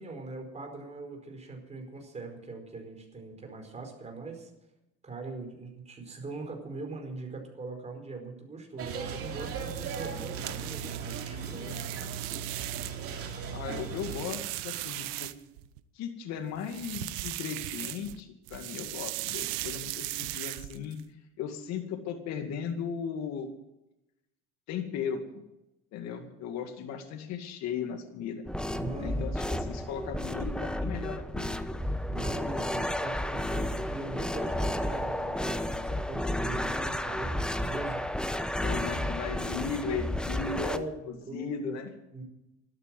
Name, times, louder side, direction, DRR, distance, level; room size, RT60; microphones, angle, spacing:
voice 1, 0.0-4.5 5.0-11.8 28.7-29.3 32.1-38.0 40.5-41.8 42.1-42.2, right 3 dB, 20° right, 3 dB, 4.9 m, -41 dB
sound 1, 8.8-14.2, right 6 dB, 45° right, 3.3 m, -37 dB
sound 2, 9.3-13.1 13.6-15.8 16.6-18.2 18.5-21.0, right 18 dB, 85° right, 1.0 m, -38 dB
voice 2, 13.5-15.3 15.9-21.0 21.4-23.5 24.7-25.4 25.9-28.4 29.0-31.6 38.6-41.9, left 7 dB, 60° left, 5 dB, 2.2 m, -36 dB
sound 3, 28.5-40.8, left 1 dB, 5° left, 0.9 m, -32 dB
13.0 x 12.0 x 7.7 m, 0.91 s
cardioid pair, 115°, 30 cm